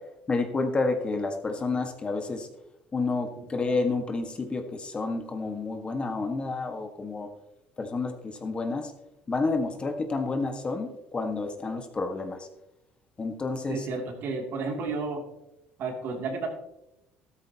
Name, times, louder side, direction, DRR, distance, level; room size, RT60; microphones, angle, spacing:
voice 1, 0.3-2.5 2.9-7.3 7.8-8.9 9.3-12.5 13.2-13.9, left 3 dB, 25° left, 5 dB, 1.6 m, -30 dB
voice 2, 3.4-3.7 13.7-15.2 15.8-16.5, right 4 dB, 60° right, 2 dB, 2.8 m, -32 dB
13.5 x 13.0 x 2.9 m, 0.87 s
cardioid pair, 110°, 4 cm